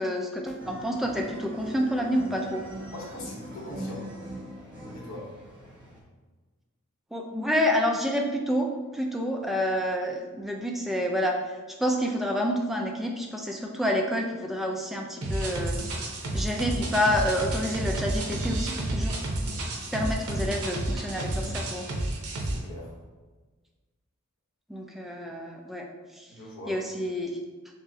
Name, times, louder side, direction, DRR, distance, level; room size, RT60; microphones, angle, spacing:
voice 1, 0.0-2.7 7.1-8.7 8.9-11.4 11.8-15.8 16.3-19.2 19.9-21.9 24.7-25.9 26.1-26.3 26.7-27.4, equal, ahead, 0 dB, 0.3 m, -28 dB
sound 1, 0.6-6.0, equal, 20° right, 0.8 m, -41 dB
voice 2, 2.9-4.1 4.9-5.4 22.4-22.9 26.3-26.8, left 1 dB, 65° left, -2 dB, 0.9 m, -41 dB
sound 2, 15.2-22.6, right 1 dB, 85° right, 0.7 m, -30 dB
6.1 x 2.1 x 2.6 m, 1.3 s
head